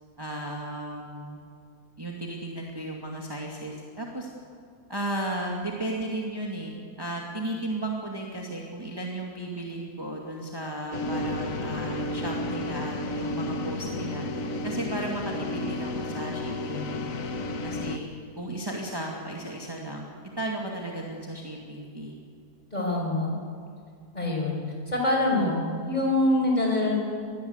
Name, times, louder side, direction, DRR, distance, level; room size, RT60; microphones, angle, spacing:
voice 1, 0.2-1.4 2.0-4.3 4.9-14.3 14.6-16.9 17.6-18.1 18.4-20.1 20.4-22.2, right 1 dB, 15° right, -1 dB, 2.3 m, -34 dB
sound 1, 10.9-18.0, left 2 dB, 55° left, 1.6 m, -32 dB
voice 2, 22.7-23.3 24.1-24.6 24.9-26.9, left 1 dB, 25° left, -1 dB, 6.0 m, -25 dB
24.5 x 20.5 x 8.1 m, 2.3 s
omnidirectional pair, 1.8 m